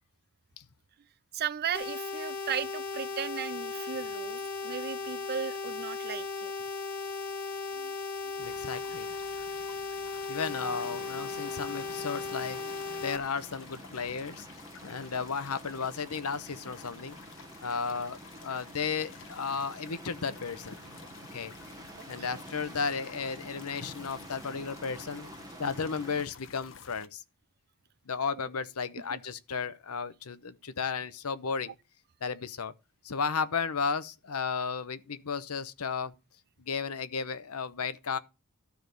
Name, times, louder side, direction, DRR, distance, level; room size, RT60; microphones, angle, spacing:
voice 1, 1.3-6.5 7.7-7.9 8.2-8.4 22.0-22.4 29.1-29.2, right 8 dB, 45° right, 0.5 m, -36 dB
sound 1, 1.7-13.2, left 4 dB, 45° left, 1.6 m, -37 dB
voice 2, 8.4-9.1 10.3-12.6 13.0-14.5 14.8-17.2 17.6-20.8 21.3-21.5 22.1-25.3 25.6-27.2 28.1-31.7 32.2-32.7 33.0-36.1 36.6-38.2, left 5 dB, 85° left, 0.9 m, -34 dB
sound 2, 8.4-27.1, left 6 dB, 60° left, 0.9 m, -52 dB
sound 3, 10.4-26.2, right 2 dB, 15° right, 0.9 m, -49 dB
12.5 x 4.7 x 6.8 m
head